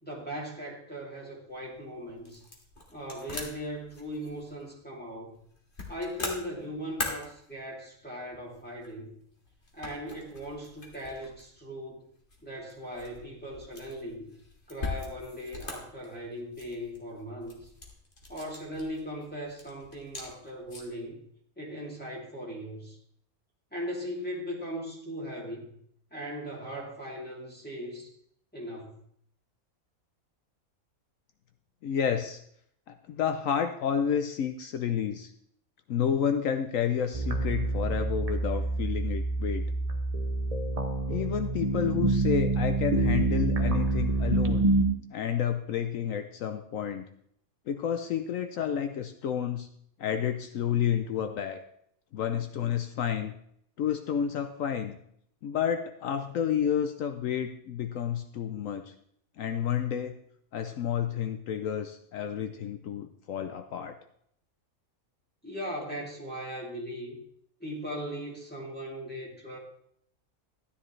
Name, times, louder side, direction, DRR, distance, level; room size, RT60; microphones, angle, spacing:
voice 1, 0.0-2.4 2.9-5.4 5.9-9.1 9.7-12.1 12.4-14.3 14.7-17.7 18.3-21.2 21.6-23.0 23.7-25.7 26.1-28.1 28.5-28.9 65.4-67.2 67.6-69.6, equal, 5° left, -5 dB, 2.6 m, -38 dB
sound 1, 1.5-21.1, left 3 dB, 40° left, 1.9 m, -43 dB
voice 2, 31.8-32.4 32.9-35.3 35.9-39.7 41.1-44.7 45.1-47.1 47.7-49.7 50.0-51.6 52.1-53.3 53.8-55.0 55.4-58.9 59.4-60.1 60.5-63.9, left 8 dB, 70° left, 7 dB, 1.0 m, -30 dB
sound 2, 37.1-44.8, right 2 dB, 35° right, 0.7 m, -27 dB
12.5 x 9.8 x 3.2 m, 0.68 s
omnidirectional pair, 1.5 m